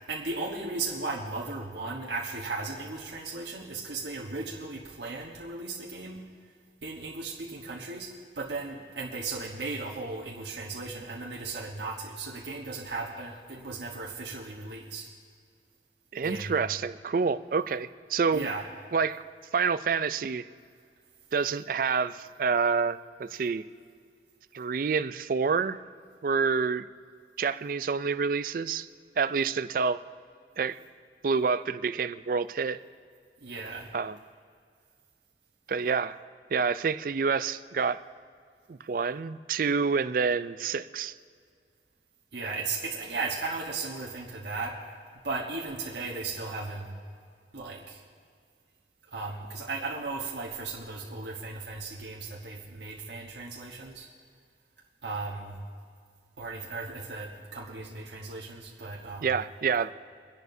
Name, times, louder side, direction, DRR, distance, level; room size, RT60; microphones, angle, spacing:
voice 1, 0.1-6.3 6.8-15.1 16.2-16.6 18.3-18.6 33.4-33.9 42.3-44.8 45.2-46.9 47.5-48.0 49.1-54.1 55.0-55.6 56.4-59.3, right 3 dB, 80° right, -2 dB, 1.2 m, -36 dB
voice 2, 16.1-18.5 18.9-19.2 19.5-20.5 21.3-23.6 24.5-25.8 26.2-26.9 27.4-28.9 29.2-30.0 30.6-30.8 31.2-32.8 33.9-34.2 35.7-36.2 36.5-38.0 38.7-41.1 59.2-59.9, right 5 dB, 50° right, 14 dB, 0.3 m, -28 dB
25.5 x 10.5 x 2.7 m, 2.1 s
head